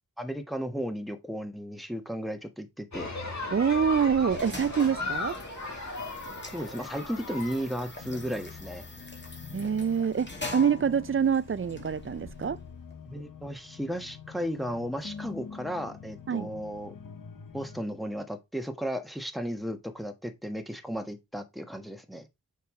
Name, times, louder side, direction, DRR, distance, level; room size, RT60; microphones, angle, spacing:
voice 1, 0.2-3.1 6.4-8.8 13.1-16.9 17.5-22.3, equal, ahead, 1.4 m, -35 dB
sound 1, 2.9-8.5, left 3 dB, 60° left, 2.4 m, -37 dB
voice 2, 3.5-5.4 9.5-12.6 16.3-16.5, right 7 dB, 40° right, 0.4 m, -26 dB
sound 2, 3.7-13.0, left 2 dB, 35° left, 2.3 m, -44 dB
sound 3, 8.0-17.8, left 6 dB, 75° left, 1.0 m, -46 dB
6.8 x 4.8 x 4.8 m
wide cardioid pair, 50°, 33 cm